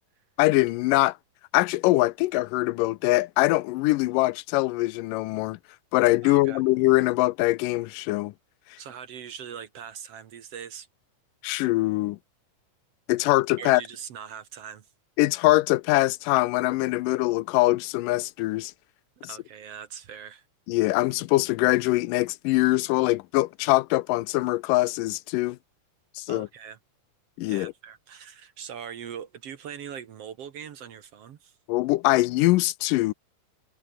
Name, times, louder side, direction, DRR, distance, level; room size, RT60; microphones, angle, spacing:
voice 1, 0.4-1.2 1.5-5.6 5.9-8.3 11.4-12.2 13.1-13.8 15.2-18.7 20.7-25.6 26.2-26.5 27.4-27.7 31.7-33.1, left 19 dB, 90° left, 2.3 m, -23 dB
voice 2, 6.2-6.6 8.8-10.9 13.6-14.9 19.2-20.5 26.3-26.8 27.4-31.6, right 8 dB, 55° right, 2.1 m, -41 dB
omnidirectional pair, 3.8 m